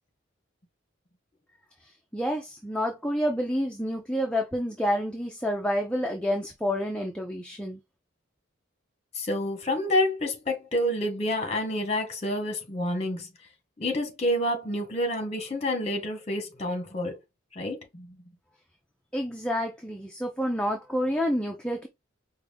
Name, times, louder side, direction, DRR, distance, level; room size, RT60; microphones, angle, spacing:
voice 1, 2.1-7.8 19.1-21.9, equal, 5° left, 0.5 m, -28 dB
voice 2, 9.1-13.3 13.8-17.2 17.5-18.2, left 1 dB, 30° left, 1.1 m, -28 dB
4.9 x 2.3 x 3.3 m
head